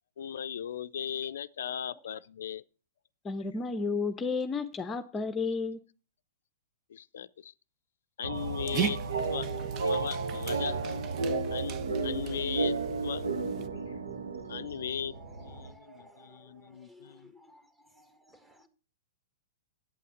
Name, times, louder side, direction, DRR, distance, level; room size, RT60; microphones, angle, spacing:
voice 1, 0.2-2.6 6.9-7.5 8.2-9.0 9.3-9.5 9.8-10.8 11.5-11.8 12.0-12.8 13.0-13.2 13.9-14.0 14.5-15.1 15.4-17.3, left 9 dB, 70° left, 0.4 m, -37 dB
voice 2, 3.2-5.8, left 4 dB, 20° left, 0.8 m, -32 dB
sound 1, 8.2-15.7, right 4 dB, 80° right, 1.3 m, -33 dB
Dog, 8.3-13.7, right 9 dB, 35° right, 0.9 m, -39 dB
voice 3, 15.6-17.6 18.0-18.1 18.5-18.7, equal, 10° right, 1.7 m, -56 dB
8.6 x 8.3 x 7.0 m
hypercardioid pair, 115°, 0 cm